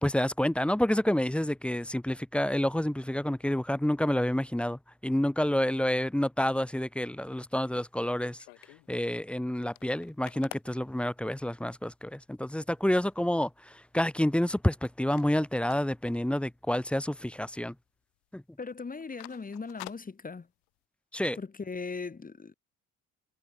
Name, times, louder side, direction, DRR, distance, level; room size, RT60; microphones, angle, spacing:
voice 1, 0.0-8.4 8.9-17.7 18.3-18.4 21.1-21.4, left 1 dB, 5° left, 0.8 m, -29 dB
sound 1, 7.5-8.9 9.3-9.4 9.6-11.7 12.3-12.4 12.7-13.1 13.5-14.6 14.8-16.6 16.9-17.1 17.4-17.9 18.2-18.4 18.8-20.8, left 33 dB, 65° left, 2.2 m, -49 dB
voice 2, 18.6-20.5 21.3-22.5, left 4 dB, 20° left, 1.6 m, -39 dB
figure-of-eight pair, 50°, 41 cm